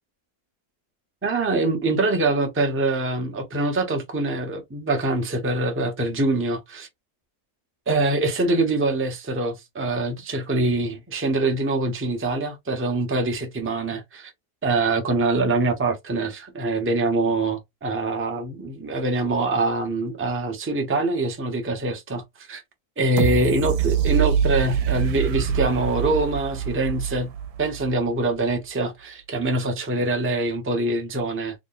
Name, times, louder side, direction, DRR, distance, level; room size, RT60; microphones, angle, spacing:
voice 1, 1.2-6.9 7.9-14.3 14.6-22.6 23.0-27.3 27.6-31.5, right 2 dB, 15° right, 0.5 m, -24 dB
sound 1, 23.2-28.1 28.5-28.6, right 8 dB, 80° right, 1.2 m, -24 dB
3.5 x 2.1 x 3.9 m
omnidirectional pair, 1.8 m